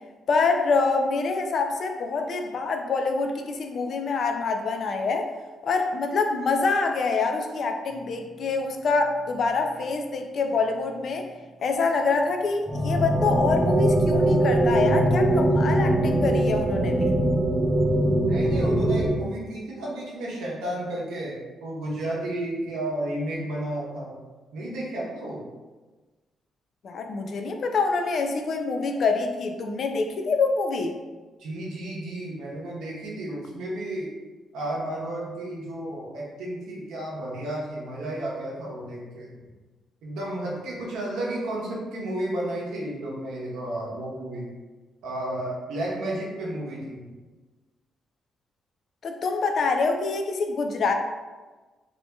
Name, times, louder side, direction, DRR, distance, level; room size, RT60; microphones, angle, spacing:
voice 1, 0.3-5.3 5.6-11.3 11.6-17.1 26.8-30.9 49.0-50.9, left 4 dB, 55° left, 5 dB, 0.3 m, -25 dB
sound 1, 12.7-19.1, right 1 dB, 20° right, 0.4 m, -22 dB
voice 2, 18.2-21.4 21.6-24.2 24.5-25.4 31.4-34.1 34.5-39.3 40.0-44.5 45.0-47.1, right 1 dB, 85° right, -4 dB, 0.7 m, -32 dB
2.7 x 2.7 x 2.2 m, 1.3 s
cardioid pair, 100°, 0 cm